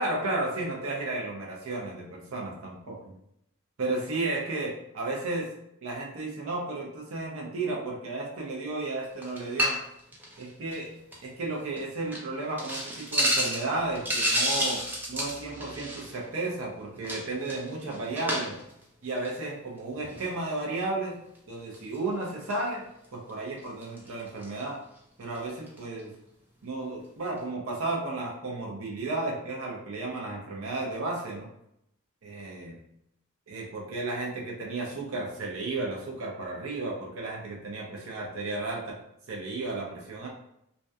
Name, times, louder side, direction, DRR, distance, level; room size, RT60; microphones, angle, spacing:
voice 1, 0.0-3.1 3.8-5.5 5.8-9.8 10.4-10.9 11.2-14.8 15.1-18.6 19.0-21.2 21.5-22.8 23.1-24.8 25.2-26.1 26.6-31.5 32.2-32.8 33.5-39.0 39.3-40.3, right 2 dB, 65° right, -2 dB, 0.6 m, -33 dB
sound 1, 9.2-9.9 10.1-10.4 10.7-10.8 11.1-11.2 11.8-11.9 12.1-12.2 12.6-16.3 17.0-18.7 19.2-19.4 20.0-20.3 21.7-22.0 22.5-22.6 23.3-23.4 23.6-24.6 25.4-25.5 25.7-25.8, equal, 10° right, 0.3 m, -30 dB
2.6 x 2.2 x 2.3 m, 0.77 s
head